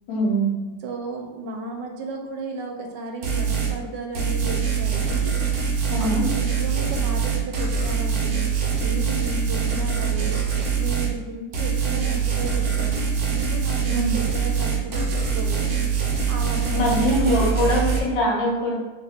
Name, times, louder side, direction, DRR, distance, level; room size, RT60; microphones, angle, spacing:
voice 1, 0.1-0.5 5.9-6.2 13.9-14.2 16.7-18.7, equal, 80° left, -3 dB, 1.6 m, -22 dB
voice 2, 0.8-5.3 5.7-10.4 10.8-15.7 16.3-17.7, right 2 dB, 75° right, 2 dB, 1.2 m, -34 dB
sound 1, 3.2-3.8 4.1-11.1 11.5-18.0, right 6 dB, 60° right, 0.8 m, -24 dB
3.0 x 2.8 x 3.4 m, 1.2 s
omnidirectional pair, 1.9 m